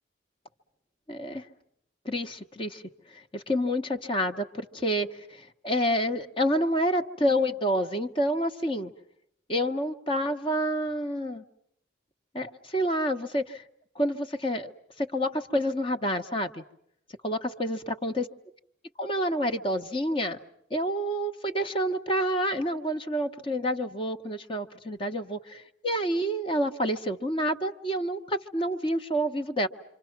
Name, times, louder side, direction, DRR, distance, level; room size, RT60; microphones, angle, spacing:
voice 1, 1.1-1.5 2.0-2.8 3.1-8.9 9.5-11.4 12.3-13.6 13.9-16.6 17.2-18.3 19.0-20.4 20.7-29.7, equal, 25° left, 7 dB, 1.1 m, -28 dB
27.5 x 25.0 x 6.0 m, 0.73 s
head